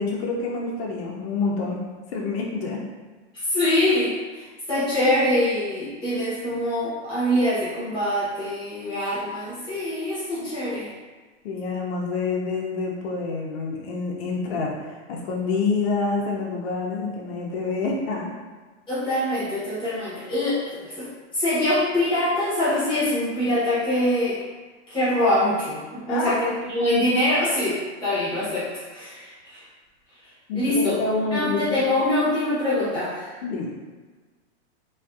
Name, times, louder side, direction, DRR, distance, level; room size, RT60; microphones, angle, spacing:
voice 1, 0.0-1.8 2.1-2.8 10.4-10.5 11.4-18.3 26.1-26.5 30.5-31.8 33.4-33.7, left 4 dB, 60° left, -2 dB, 0.6 m, -27 dB
voice 2, 3.5-10.9 18.9-21.1 21.3-24.4 24.9-29.6 30.5-31.0 31.3-33.3, left 1 dB, 15° left, -11 dB, 0.9 m, -24 dB
2.5 x 2.3 x 2.3 m, 1.3 s
supercardioid pair, 155°, 35 cm